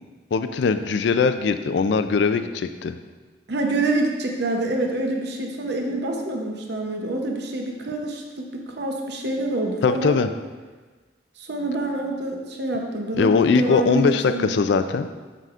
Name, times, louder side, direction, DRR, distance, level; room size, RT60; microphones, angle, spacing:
voice 1, 0.3-3.0 9.8-10.3 13.2-15.1, left 4 dB, 70° left, 10 dB, 0.4 m, -21 dB
voice 2, 3.5-10.2 11.4-14.5, right 2 dB, 60° right, 1 dB, 0.8 m, -27 dB
7.5 x 6.8 x 2.5 m, 1.4 s
head